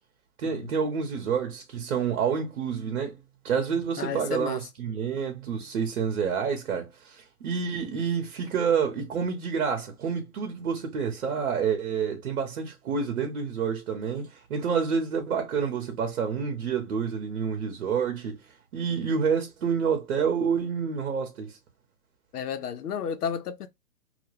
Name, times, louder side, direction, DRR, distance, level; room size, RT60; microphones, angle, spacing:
voice 1, 0.4-3.2 3.4-18.4 18.7-21.6, right 6 dB, 55° right, 0.8 m, -28 dB
voice 2, 4.0-4.6 22.3-23.7, left 7 dB, 85° left, 0.6 m, -32 dB
2.2 x 2.2 x 3.0 m
hypercardioid pair, 135°, 45 cm